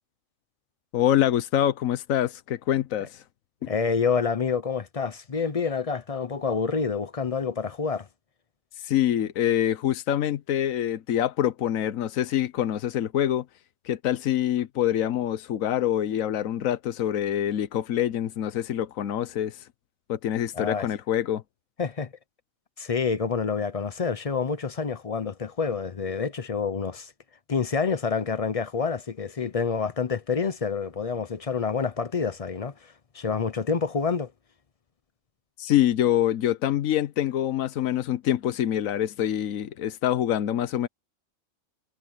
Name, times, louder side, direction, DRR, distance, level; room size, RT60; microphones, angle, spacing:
voice 1, 0.9-3.2 3.6-3.7 8.8-13.4 13.8-19.7 20.1-21.4 35.6-40.9, left 11 dB, 85° left, 1.2 m, -25 dB
voice 2, 3.7-8.1 20.5-20.9 21.8-22.1 22.8-27.1 27.5-34.3, left 5 dB, 35° left, 0.6 m, -28 dB
omnidirectional pair, 1.4 m